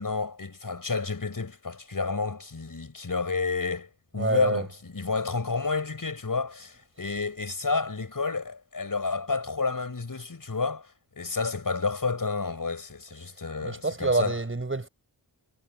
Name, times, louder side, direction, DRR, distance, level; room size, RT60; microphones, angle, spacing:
voice 1, 0.0-10.9 11.2-14.4, left 4 dB, 45° left, 6.6 m, -30 dB
voice 2, 4.2-4.7 13.6-14.9, right 2 dB, 25° right, 5.4 m, -27 dB
wide cardioid pair, 115°, 45 cm